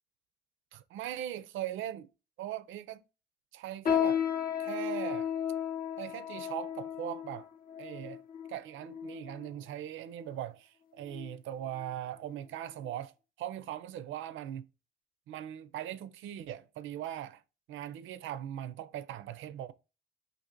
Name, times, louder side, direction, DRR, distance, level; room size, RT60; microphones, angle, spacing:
voice 1, 0.7-2.1 2.4-3.0 3.5-4.2 4.6-5.3 6.0-7.5 7.8-8.2 8.5-13.1 13.4-14.7 15.3-17.4 17.7-19.7, right 11 dB, 80° right, 0.4 m, -40 dB
sound 1, 3.9-9.5 10.2-10.3 11.1-11.4 11.8-11.9 12.6-12.7, left 9 dB, 45° left, 0.6 m, -34 dB
2.8 x 2.6 x 4.3 m
cardioid pair, 90°, 20 cm